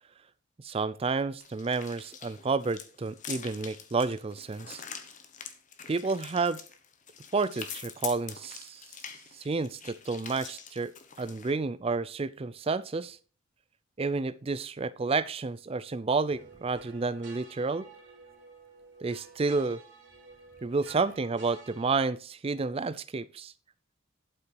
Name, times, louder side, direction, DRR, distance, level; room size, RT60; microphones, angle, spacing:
voice 1, 0.6-4.8 5.9-6.6 7.3-8.8 9.4-10.9 11.2-13.2 14.0-17.9 19.0-19.8 20.6-23.5, right 4 dB, 25° right, 18 dB, 0.4 m, -30 dB
sound 1, 1.4-11.5, left 7 dB, 35° left, 1.0 m, -44 dB
sound 2, 16.3-22.1, right 4 dB, 55° right, 3.5 m, -52 dB
11.5 x 5.9 x 4.6 m, 0.38 s
head